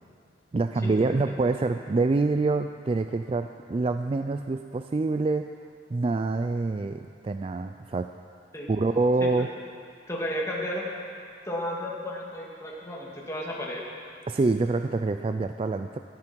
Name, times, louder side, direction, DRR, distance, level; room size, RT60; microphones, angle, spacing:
voice 1, 0.5-5.5 5.9-8.1 8.7-9.5 14.3-16.0, right 3 dB, 30° right, 8 dB, 0.3 m, -26 dB
voice 2, 10.1-10.9 11.4-13.8, equal, 15° left, -4 dB, 2.3 m, -33 dB
17.0 x 13.5 x 4.6 m, 2.4 s
head